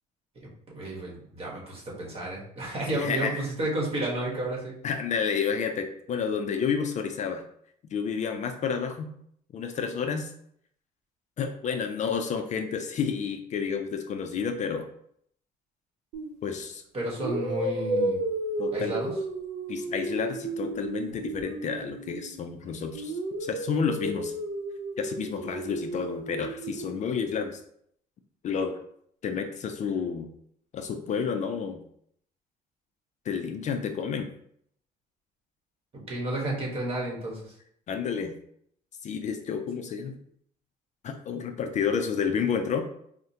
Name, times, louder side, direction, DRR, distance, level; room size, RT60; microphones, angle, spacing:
voice 1, 0.7-4.7 16.9-18.2 18.7-19.1 36.1-37.4, right 1 dB, 35° right, -3 dB, 1.3 m, -31 dB
voice 2, 2.9-3.4 4.8-7.4 7.9-9.1 9.5-10.3 11.4-14.9 16.4-16.8 18.6-19.0 19.7-24.3 25.0-27.6 28.4-28.8 29.2-30.3 30.7-31.8 33.3-34.3 37.9-38.3 39.0-40.2 41.0-42.8, left 6 dB, 45° left, 6 dB, 0.4 m, -30 dB
sound 1, 16.1-16.4 17.2-22.5 22.9-26.9, right 2 dB, 85° right, 0.7 m, -33 dB
4.7 x 2.1 x 2.8 m, 0.68 s
cardioid pair, 110°, 17 cm